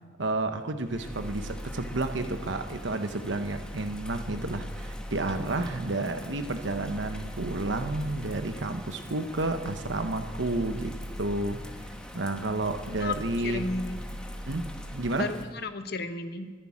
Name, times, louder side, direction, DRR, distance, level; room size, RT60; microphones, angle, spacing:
voice 1, 0.2-11.9 12.1-13.7 14.5-15.3, right 2 dB, 65° right, 1.0 m, -31 dB
Bird vocalization bird call bird song / Rain, 0.8-15.4, equal, 5° left, 1.0 m, -40 dB
voice 2, 13.4-14.0 15.2-16.5, left 3 dB, 50° left, 0.9 m, -33 dB
11.0 x 10.5 x 9.8 m
head